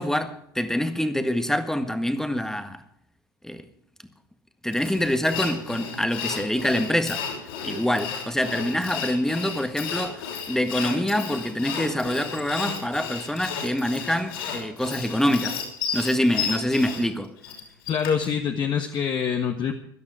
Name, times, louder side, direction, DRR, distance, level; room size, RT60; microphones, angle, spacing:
voice 1, 0.0-2.8 3.4-3.7 4.6-7.2 7.6-15.6 15.9-17.3, left 1 dB, 5° left, 1.6 m, -25 dB
Sawing, 4.7-18.3, left 6 dB, 70° left, 5.9 m, -33 dB
voice 2, 17.9-19.7, left 7 dB, 40° left, 1.5 m, -25 dB
17.0 x 12.5 x 4.9 m
figure-of-eight pair, 75°, 12 cm